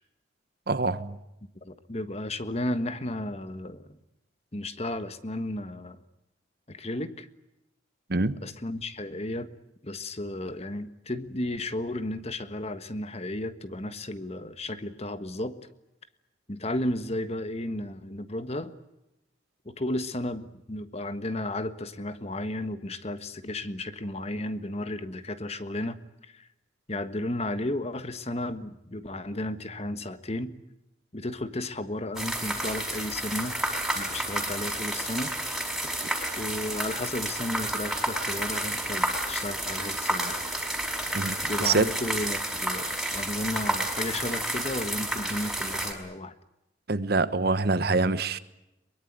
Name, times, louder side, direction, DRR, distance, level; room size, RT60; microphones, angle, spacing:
voice 1, 0.7-1.2 8.1-8.4 36.0-36.1 41.1-41.9 46.9-48.4, right 3 dB, 60° right, 13 dB, 1.2 m, -25 dB
voice 2, 1.6-4.0 4.5-6.0 6.7-7.3 8.4-9.5 9.8-15.5 16.5-18.7 19.6-26.0 26.3-26.5 26.9-30.5 31.1-33.6 33.9-35.3 36.4-40.4 41.4-46.3, left 1 dB, 35° left, 11 dB, 1.4 m, -33 dB
sound 1, 32.1-45.9, right 1 dB, ahead, 4.9 m, -30 dB
23.0 x 22.0 x 9.4 m, 0.87 s
head